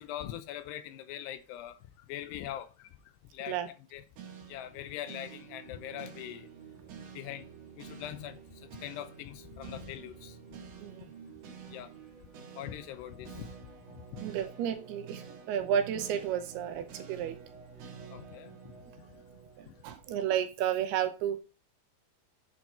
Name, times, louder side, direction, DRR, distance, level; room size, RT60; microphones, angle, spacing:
voice 1, 0.0-1.7 2.1-2.9 3.3-4.0 4.5-6.5 7.1-7.5 7.8-8.4 8.8-10.4 11.7-11.9 12.6-13.5 14.1-14.2 18.1-18.7 19.7-19.8, left 12 dB, 85° left, 2.9 m, -42 dB
sound 1, 4.2-20.4, right 7 dB, 65° right, 2.2 m, -49 dB
voice 2, 14.2-17.4 19.6-21.4, right 9 dB, 80° right, 2.8 m, -32 dB
8.3 x 4.5 x 4.3 m
omnidirectional pair, 4.7 m